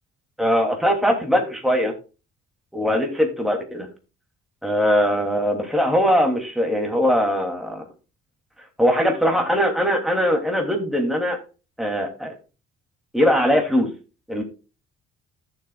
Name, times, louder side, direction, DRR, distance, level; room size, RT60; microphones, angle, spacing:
voice 1, 0.4-1.9 2.7-3.9 4.6-7.9 8.8-11.4 11.8-12.3 13.1-13.9 14.3-14.4, equal, ahead, 2 dB, 2.9 m, -21 dB
14.0 x 7.4 x 2.4 m, 0.32 s
hypercardioid pair, 55°, 29 cm